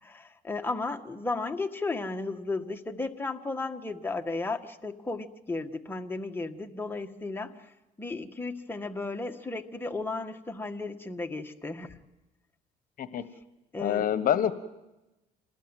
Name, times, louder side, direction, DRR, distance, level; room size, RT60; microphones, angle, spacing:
voice 1, 0.0-7.7 8.0-12.0 13.7-14.2, left 3 dB, 10° left, 4 dB, 1.8 m, -34 dB
voice 2, 13.8-14.5, left 10 dB, 55° left, 11 dB, 1.3 m, -26 dB
27.0 x 20.0 x 9.2 m, 1.0 s
cardioid pair, 110°, 17 cm